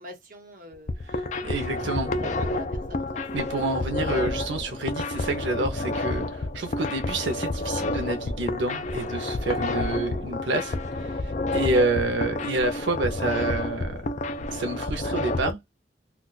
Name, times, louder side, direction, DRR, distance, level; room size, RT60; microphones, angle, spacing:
voice 1, 0.0-1.2 1.7-1.8 2.1-3.2, equal, 45° right, 1.0 m, -44 dB
sound 1, 0.7-15.5, left 2 dB, 40° left, 0.4 m, -29 dB
voice 2, 1.0-2.1 3.3-14.0 14.5-15.6, right 2 dB, 85° right, 0.6 m, -28 dB
2.4 x 2.3 x 3.8 m
head